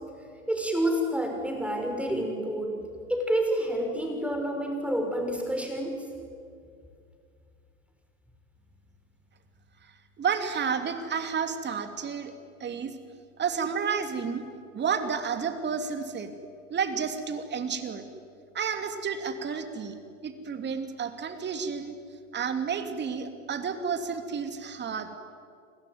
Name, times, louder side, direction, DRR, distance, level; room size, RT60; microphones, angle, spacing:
voice 1, 0.5-2.8 3.1-6.0, right 1 dB, 5° right, 3 dB, 5.7 m, -28 dB
voice 2, 10.2-12.3 12.6-12.9 13.4-14.4 14.7-16.3 16.7-18.1 18.5-22.0 22.3-25.1, right 6 dB, 25° right, 8 dB, 2.9 m, -31 dB
29.5 x 21.0 x 9.5 m, 2.3 s
hypercardioid pair, 90°, 39 cm